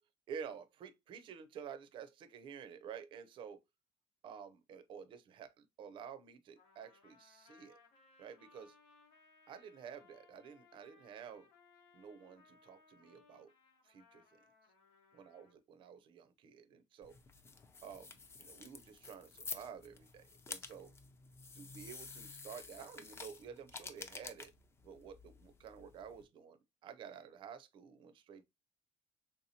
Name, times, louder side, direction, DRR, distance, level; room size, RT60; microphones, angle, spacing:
voice 1, 0.3-3.6 4.2-7.8 8.2-8.7 9.5-11.5 11.9-13.5 13.9-14.2 15.1-17.2 17.8-20.9 21.6-24.5 24.8-28.4, right 7 dB, 45° right, 0.4 m, -51 dB
Trumpet, 6.6-15.6, left 4 dB, 90° left, 1.1 m, -66 dB
sound 1, 17.0-26.2, left 4 dB, 20° left, 0.4 m, -50 dB
3.5 x 2.7 x 2.7 m
cardioid pair, 135°, 12 cm